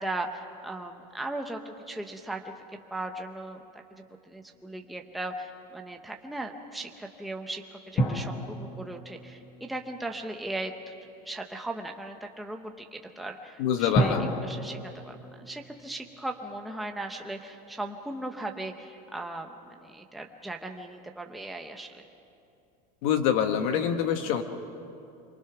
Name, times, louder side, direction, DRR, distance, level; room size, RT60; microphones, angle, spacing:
voice 1, 0.0-2.5 2.9-3.8 4.3-10.9 11.2-14.8 15.0-22.0, right 2 dB, ahead, 2 dB, 0.7 m, -38 dB
sound 1, 8.0-10.6 13.9-16.6 16.8-16.9, equal, 20° left, 1.3 m, -32 dB
voice 2, 13.6-14.3 23.0-24.4, left 8 dB, 55° left, 6 dB, 1.4 m, -25 dB
26.0 x 23.5 x 5.9 m, 2.6 s
supercardioid pair, 175°, 21 cm